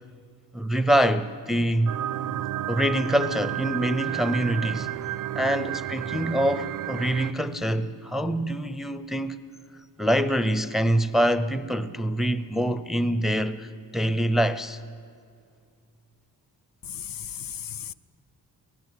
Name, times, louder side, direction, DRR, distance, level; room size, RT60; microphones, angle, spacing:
voice 1, 0.5-2.0 2.7-4.9 5.4-9.4 10.0-14.8, right 1 dB, ahead, 0.5 m, -25 dB
sound 1, 1.9-7.3, right 13 dB, 55° right, 0.5 m, -31 dB
voice 2, 16.9-17.9, left 9 dB, 60° left, 0.6 m, -36 dB
23.5 x 18.0 x 9.4 m
wide cardioid pair, 170°, 38 cm